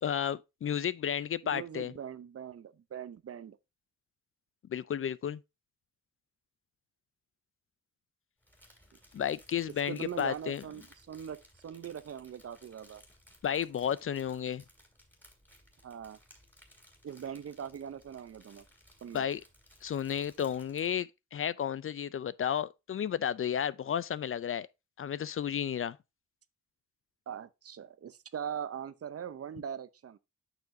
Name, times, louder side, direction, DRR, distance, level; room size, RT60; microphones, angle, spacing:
voice 1, 0.0-1.9 4.7-5.4 9.1-10.6 13.4-14.6 19.1-19.4 19.8-24.7 25.0-26.0, left 9 dB, 45° left, 0.4 m, -32 dB
voice 2, 1.4-3.6 9.9-13.0 15.8-16.2 17.0-18.6 19.0-19.3 27.3-30.2, right 8 dB, 50° right, 0.6 m, -41 dB
Crumpling crinkling, 8.4-21.0, equal, 5° left, 2.8 m, -61 dB
8.9 x 6.0 x 2.6 m
cardioid pair, 80°, 30 cm